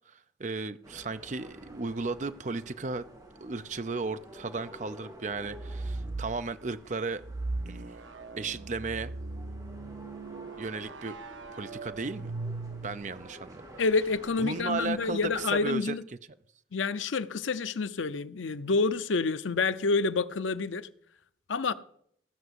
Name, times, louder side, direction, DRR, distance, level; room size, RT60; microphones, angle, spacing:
voice 1, 0.1-3.1 3.4-7.2 7.7-7.9 8.4-9.1 10.6-11.2 11.5-12.3 12.8-13.7 14.4-15.9, right 3 dB, 40° right, 0.5 m, -35 dB
sound 1, 0.8-15.6, equal, 20° right, 2.0 m, -51 dB
sound 2, 5.4-6.4 7.2-13.2, right 2 dB, 80° right, 0.8 m, -38 dB
voice 2, 13.8-16.0 16.7-20.9 21.5-21.7, left 4 dB, 90° left, 0.6 m, -28 dB
15.5 x 5.9 x 8.0 m
head